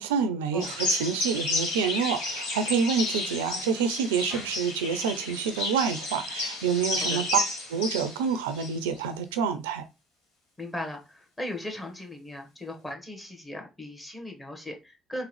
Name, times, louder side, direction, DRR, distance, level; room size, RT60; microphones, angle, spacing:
voice 1, 0.0-7.4 7.7-9.8, right 6 dB, 75° right, 0.4 m, -27 dB
sound 1, 0.6-8.9, left 2 dB, 75° left, 1.1 m, -31 dB
voice 2, 10.6-15.3, left 1 dB, 20° left, 1.4 m, -38 dB
3.7 x 3.0 x 3.1 m
figure-of-eight pair, 50°, 0 cm